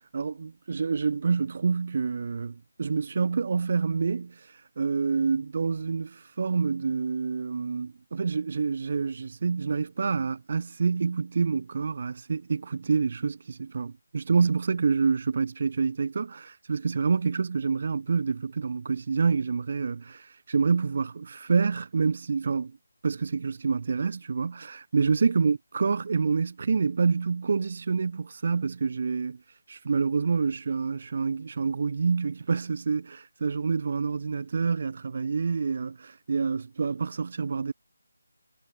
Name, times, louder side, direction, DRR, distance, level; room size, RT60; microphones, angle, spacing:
voice 1, 0.1-4.5 4.8-22.8 23.0-29.4 29.7-37.7, right 5 dB, 40° right, 0.4 m, -27 dB
figure-of-eight pair, 170°, 0 cm